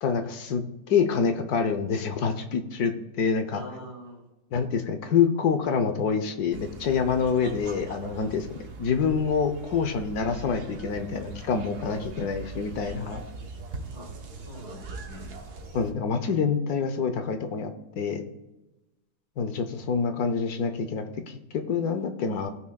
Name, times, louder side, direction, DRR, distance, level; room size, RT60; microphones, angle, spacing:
voice 1, 0.0-3.6 4.5-8.5 8.8-13.2 15.7-18.2 19.4-22.5, left 6 dB, 65° left, 8 dB, 1.2 m, -26 dB
voice 2, 3.5-4.3 7.0-7.2 13.9-14.1 14.4-15.3, left 1 dB, 35° left, -3 dB, 2.6 m, -44 dB
sound 1, 6.5-15.9, right 3 dB, 60° right, 1.6 m, -41 dB
17.0 x 6.0 x 2.3 m, 1.0 s
omnidirectional pair, 1.9 m